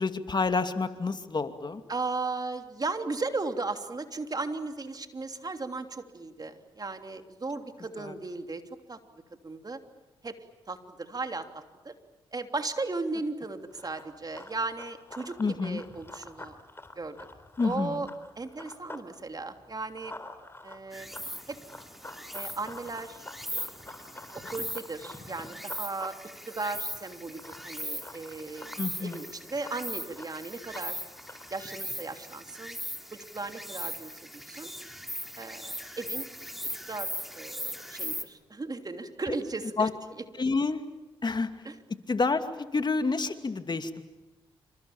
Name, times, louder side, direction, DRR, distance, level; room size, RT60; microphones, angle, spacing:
voice 1, 0.0-1.8 8.0-8.1 15.4-15.8 17.6-18.1 28.8-29.2 39.8-39.9 40.4-40.8 41.2-41.5 42.1-42.5 42.7-44.0, left 4 dB, 40° left, 8 dB, 2.6 m, -28 dB
voice 2, 1.9-8.6 8.9-9.0 9.4-9.8 10.2-10.4 10.7-11.9 12.3-16.5 16.9-17.2 17.6-18.1 18.4-20.2 20.6-21.1 21.5-21.6 22.3-23.2 23.5-23.7 24.3-26.1 26.5-31.0 31.5-32.8 33.1-34.1 34.5-34.7 35.4-36.2 36.9-37.1 37.3-39.9 41.6-41.7, right 3 dB, 35° right, 6 dB, 3.1 m, -36 dB
Run, 13.6-19.1 19.4-31.6, left 2 dB, 20° left, 4.0 m, -48 dB
Insect, 20.9-38.2, equal, ahead, 4.1 m, -39 dB
28.5 x 26.5 x 7.4 m, 1.1 s
supercardioid pair, 45°, 11 cm